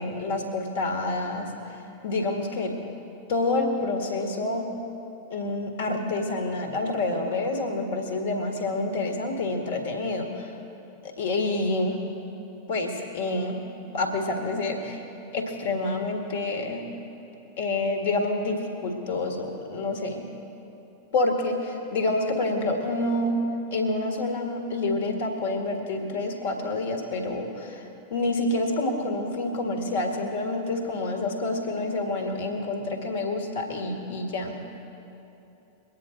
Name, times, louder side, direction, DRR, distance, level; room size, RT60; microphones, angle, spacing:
voice 1, 0.0-2.8 3.3-4.7 5.3-10.5 11.0-12.0 12.7-13.6 13.9-15.0 15.3-16.9 17.6-20.3 21.1-23.4 23.7-34.6, left 2 dB, 55° left, 4 dB, 1.8 m, -28 dB
23.5 x 9.7 x 3.9 m, 3.0 s
figure-of-eight pair, 90°, 0 cm